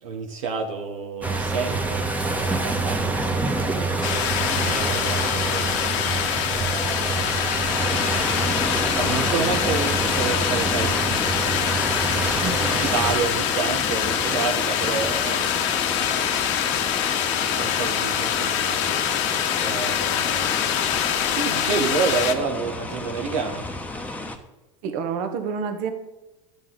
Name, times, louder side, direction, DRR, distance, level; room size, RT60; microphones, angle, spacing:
voice 1, 0.0-2.1 2.4-5.6 6.5-7.3 8.8-11.7 12.7-15.8 17.5-18.9 19.6-21.0 21.3-23.7, right 5 dB, 75° right, 2 dB, 1.2 m, -29 dB
sound 1, 1.2-13.2, right 3 dB, 10° right, 1.2 m, -26 dB
sound 2, 4.0-22.3, left 10 dB, 65° left, 1.0 m, -25 dB
sound 3, 7.8-24.4, left 2 dB, 10° left, 1.0 m, -32 dB
voice 2, 12.4-12.8 24.8-25.9, right 6 dB, 55° right, 7 dB, 1.4 m, -28 dB
11.5 x 7.4 x 3.8 m, 1.1 s
hypercardioid pair, 95°, 16 cm